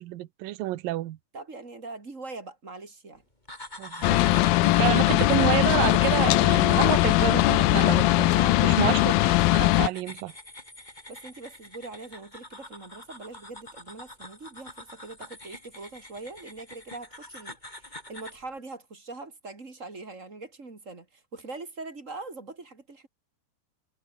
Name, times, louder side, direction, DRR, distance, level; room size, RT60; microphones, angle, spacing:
voice 1, 0.0-1.2 3.8-4.3 4.8-8.3 8.6-9.2 9.5-10.3, right 16 dB, 80° right, 2.8 m, -29 dB
voice 2, 1.3-3.2 4.6-4.7 8.3-8.9 11.1-23.1, right 3 dB, 25° right, 2.8 m, -42 dB
sound 1, 3.5-18.4, left 1 dB, 10° left, 5.4 m, -44 dB
sound 2, 4.0-9.9, left 18 dB, 85° left, 2.6 m, -20 dB
omnidirectional pair, 4.1 m